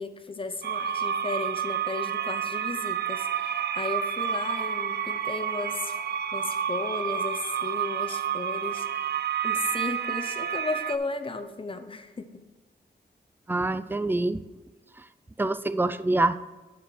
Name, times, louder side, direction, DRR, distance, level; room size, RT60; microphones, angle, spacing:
voice 1, 0.0-6.0 6.3-8.9 9.4-12.4, left 3 dB, 30° left, 9 dB, 0.8 m, -35 dB
sound 1, 0.6-11.0, right 8 dB, 75° right, 0.5 m, -30 dB
voice 2, 13.5-14.4 15.0-15.1 15.4-16.4, right 2 dB, 10° right, 13 dB, 0.4 m, -25 dB
9.3 x 5.2 x 6.0 m, 1.2 s
wide cardioid pair, 115°, 17 cm